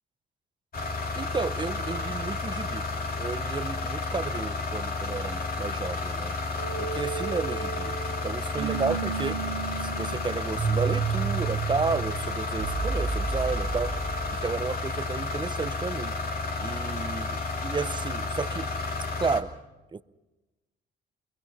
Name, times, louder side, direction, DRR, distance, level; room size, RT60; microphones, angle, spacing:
sound 1, 0.7-19.4, left 3 dB, 50° left, 2.6 m, -32 dB
voice 1, 1.2-2.8 3.2-6.4 6.8-8.0 8.2-9.4 9.8-16.1 16.6-18.7 19.2-19.5 19.9-20.0, right 4 dB, 25° right, 0.8 m, -32 dB
sound 2, 6.6-14.4, right 6 dB, 85° right, 3.0 m, -32 dB
23.5 x 22.5 x 5.5 m
cardioid pair, 90°, 20 cm